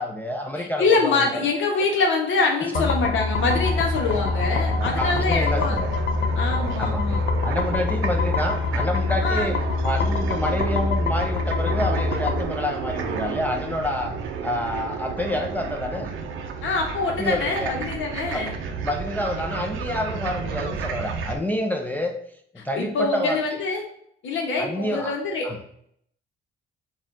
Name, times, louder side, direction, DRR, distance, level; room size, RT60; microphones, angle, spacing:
voice 1, 0.0-1.4 1.7-1.8 2.6-2.9 4.1-4.2 5.0-5.9 6.8-7.0 7.4-9.6 9.8-14.2 14.4-16.1 17.1-17.7 18.3-18.4 18.8-22.1 22.6-23.4 24.6-25.1 25.4-25.6, left 1 dB, 10° left, 2 dB, 0.4 m, -28 dB
voice 2, 0.6-5.8 6.3-7.2 9.2-9.5 16.6-18.5 22.7-23.8 24.2-25.4, left 3 dB, 75° left, 1 dB, 1.0 m, -24 dB
sound 1, 2.7-12.4, left 4 dB, 55° left, 0.6 m, -25 dB
sound 2, 3.3-21.4, right 6 dB, 85° right, 0.6 m, -32 dB
4.2 x 2.4 x 3.7 m, 0.70 s
cardioid pair, 90°, 20 cm